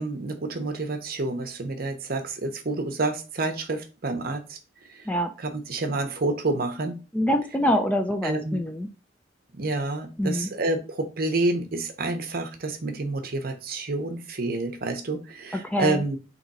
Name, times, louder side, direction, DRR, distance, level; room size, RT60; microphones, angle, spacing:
voice 1, 0.0-4.6 4.9-5.0 5.4-7.0 8.2-8.6 9.5-16.2, right 2 dB, 50° right, 6 dB, 0.7 m, -29 dB
voice 2, 7.1-8.9 10.2-10.5 15.6-16.0, equal, 10° left, 5 dB, 0.3 m, -25 dB
3.6 x 3.0 x 4.1 m, 0.32 s
head